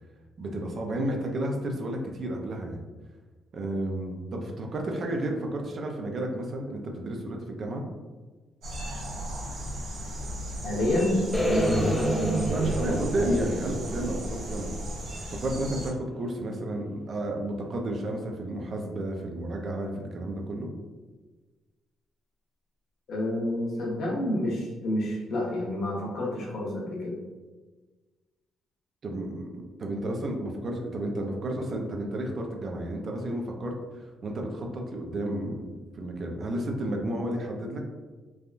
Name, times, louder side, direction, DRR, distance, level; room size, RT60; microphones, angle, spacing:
voice 1, 0.4-2.8 3.5-7.8 12.5-14.7 15.3-20.7 29.0-33.7 34.2-37.8, right 1 dB, 50° right, 2 dB, 0.5 m, -32 dB
sound 1, 8.6-15.9, right 1 dB, 80° right, 1.1 m, -36 dB
voice 2, 10.6-12.5 12.9-13.0 23.1-27.1, left 1 dB, 65° left, -3 dB, 0.9 m, -29 dB
sound 2, 11.3-15.4, right 1 dB, 20° left, 0.5 m, -29 dB
3.4 x 2.2 x 2.5 m, 1.3 s
cardioid pair, 90°, 0 cm